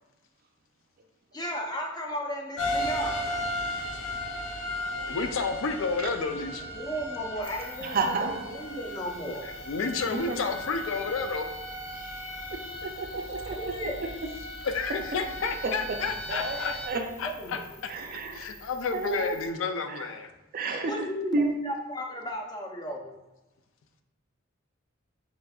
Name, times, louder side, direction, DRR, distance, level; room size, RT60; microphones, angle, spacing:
voice 1, 1.3-3.3 6.2-9.5 13.5-14.0 17.2-17.7 20.9-23.1, equal, 20° left, 1 dB, 0.5 m, -35 dB
sound 1, 2.6-16.9, left 1 dB, 90° left, 1.0 m, -36 dB
voice 2, 5.1-6.6 9.4-11.5 14.6-16.7 17.2-17.9 18.3-20.3, left 4 dB, 75° left, 7 dB, 0.4 m, -31 dB
sound 2, 7.4-19.5, left 2 dB, 55° left, 1.1 m, -51 dB
voice 3, 7.8-8.5 10.1-10.4 12.8-13.9 16.3-17.0 17.9-18.5 18.9-19.5 19.9-20.0 20.5-21.1 21.3-21.5, right 3 dB, 45° right, 3 dB, 0.5 m, -31 dB
5.0 x 3.3 x 2.3 m, 1.0 s
head